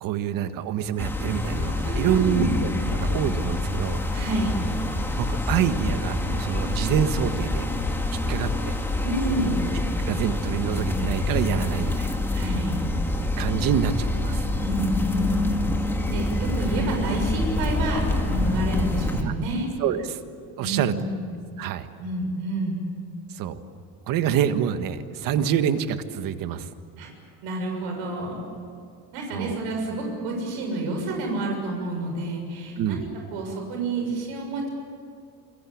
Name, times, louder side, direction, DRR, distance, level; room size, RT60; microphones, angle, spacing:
voice 1, 0.0-4.0 5.1-7.7 8.1-8.8 9.7-9.8 10.1-12.2 13.4-14.4 19.2-19.3 19.8-20.2 20.6-21.0 21.6-21.9 23.3-23.6 24.1-26.7 29.3-29.6 32.8-33.1, right 9 dB, 55° right, 9 dB, 1.7 m, -26 dB
sound 1, 1.0-19.2, left 2 dB, 5° left, 2.1 m, -26 dB
voice 2, 1.8-2.6 4.1-4.6 9.0-9.6 12.3-12.8 14.6-15.3 16.0-19.7 20.6-21.2 22.0-22.8 27.0-27.1 27.4-28.4 29.1-33.1 33.3-34.7, right 2 dB, 85° right, 2 dB, 7.0 m, -29 dB
28.5 x 23.5 x 8.7 m, 2.3 s
cardioid pair, 160°, 40 cm